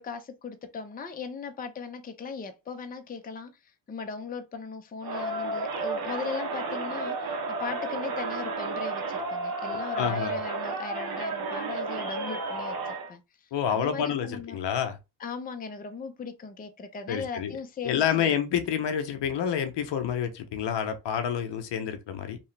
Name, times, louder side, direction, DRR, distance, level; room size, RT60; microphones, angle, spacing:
voice 1, 0.0-14.6 15.2-18.4, left 5 dB, 20° left, 0.5 m, -38 dB
Crowd, 5.0-13.1, right 3 dB, 50° right, 0.9 m, -32 dB
voice 2, 10.0-10.4 13.5-15.0 17.1-17.5 17.8-22.4, left 8 dB, 60° left, 0.7 m, -28 dB
2.8 x 2.3 x 3.2 m
supercardioid pair, 60°, 47 cm